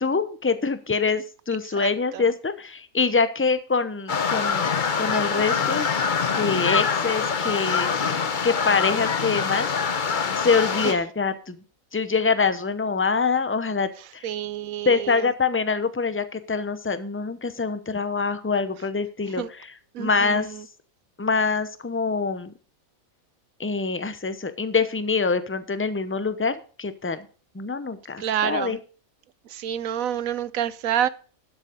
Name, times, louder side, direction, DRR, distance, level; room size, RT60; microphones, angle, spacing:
voice 1, 0.0-5.9 6.3-9.7 10.2-11.6 11.9-14.3 14.8-19.7 20.0-20.5 21.2-22.5 23.6-27.2 27.5-28.8, left 4 dB, 10° left, 0.6 m, -25 dB
voice 2, 1.8-2.2 10.8-10.9 14.0-15.3 19.4-19.5 19.9-20.6 28.2-28.8 29.5-31.1, right 10 dB, 80° right, 1.1 m, -28 dB
sound 1, 4.1-10.9, left 6 dB, 40° left, 0.9 m, -25 dB
12.5 x 7.1 x 5.1 m
omnidirectional pair, 1.5 m